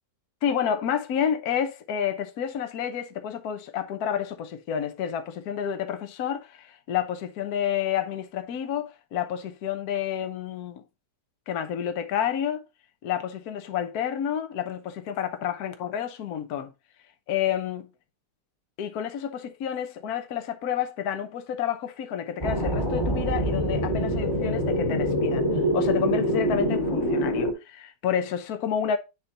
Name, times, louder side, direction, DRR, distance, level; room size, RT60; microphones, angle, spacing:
voice 1, 0.4-10.8 11.5-12.6 13.0-16.7 17.3-17.8 18.8-25.5 25.7-29.0, left 9 dB, 65° left, 1.3 m, -29 dB
sound 1, 22.4-27.5, equal, 15° left, 2.4 m, -25 dB
9.4 x 3.8 x 3.9 m
omnidirectional pair, 1.8 m